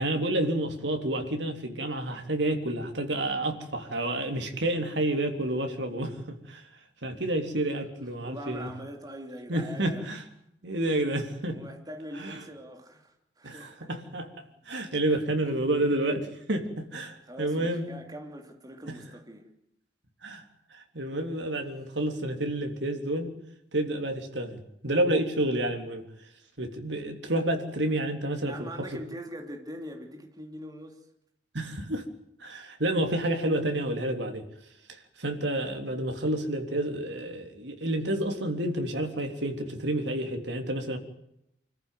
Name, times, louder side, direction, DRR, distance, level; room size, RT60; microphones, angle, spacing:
voice 1, 0.0-6.6 7.0-8.7 9.5-10.2 10.6-11.6 12.2-12.4 13.4-17.9 18.9-19.0 20.2-20.4 20.7-23.3 23.7-26.0 26.6-28.7 31.5-32.0 32.4-34.4 35.2-41.0, right 1 dB, 80° right, 3.5 m, -29 dB
voice 2, 8.2-10.0 11.5-13.9 15.1-15.2 17.2-19.5 28.5-31.0, equal, 20° right, 3.1 m, -42 dB
26.0 x 14.5 x 9.4 m
head